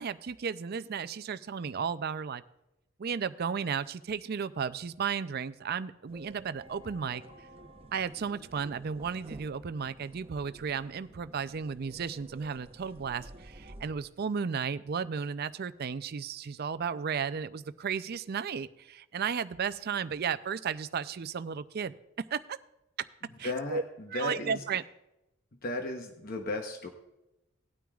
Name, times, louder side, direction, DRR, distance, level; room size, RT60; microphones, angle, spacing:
voice 1, 0.0-2.4 3.0-7.2 7.9-22.6 23.4-23.8 24.1-24.8, right 6 dB, 50° right, 13 dB, 0.4 m, -34 dB
sound 1, 6.1-13.9, right 1 dB, 30° right, 0.8 m, -51 dB
voice 2, 23.4-24.6 25.5-26.9, left 2 dB, 45° left, 4 dB, 0.9 m, -35 dB
18.0 x 9.2 x 2.4 m, 0.91 s
head